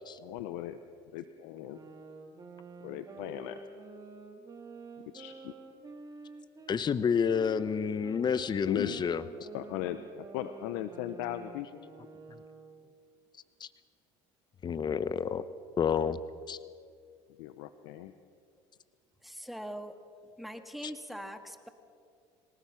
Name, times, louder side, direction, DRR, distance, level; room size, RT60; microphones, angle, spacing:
voice 1, 0.2-0.8 1.1-1.8 2.8-3.6 5.2-5.5 8.7-9.0 9.5-11.8 17.4-18.1, left 13 dB, 80° left, 11 dB, 0.9 m, -38 dB
sound 1, 1.6-6.8 7.3-12.9, right 3 dB, 30° right, 3.3 m, -49 dB
voice 2, 6.7-9.2 13.6-13.7 14.6-15.4 15.8-16.2 16.5-16.6 20.8-20.9, left 7 dB, 35° left, 15 dB, 0.9 m, -29 dB
voice 3, 19.2-19.9 20.4-21.7, equal, ahead, 7 dB, 1.8 m, -42 dB
24.5 x 18.5 x 5.8 m, 2.2 s
supercardioid pair, 85°, 13 cm